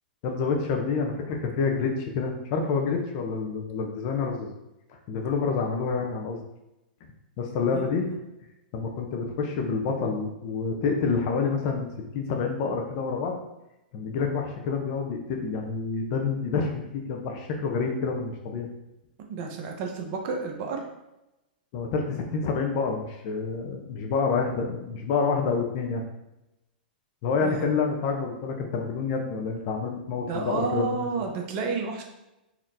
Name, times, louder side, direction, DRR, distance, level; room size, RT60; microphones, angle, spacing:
voice 1, 0.2-4.5 5.1-6.4 7.4-8.1 8.7-11.9 12.1-13.4 13.9-18.7 21.7-26.0 27.2-31.1, left 5 dB, 45° left, 2 dB, 0.7 m, -28 dB
voice 2, 19.3-20.9 27.4-27.8 30.2-32.0, right 4 dB, 45° right, 2 dB, 0.8 m, -31 dB
4.2 x 2.9 x 2.7 m, 0.92 s
hypercardioid pair, 115°, 5 cm